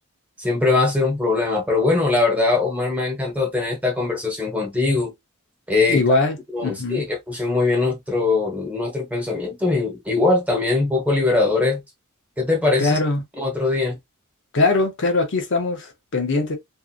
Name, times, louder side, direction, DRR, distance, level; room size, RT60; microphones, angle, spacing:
voice 1, 0.4-5.1 5.7-6.0 6.5-11.8 12.4-13.0 13.4-14.0, left 3 dB, 5° right, 1.0 m, -21 dB
voice 2, 5.9-6.4 6.6-7.0 12.8-13.2 14.5-16.6, left 3 dB, 55° left, 0.7 m, -21 dB
2.7 x 2.5 x 2.4 m
head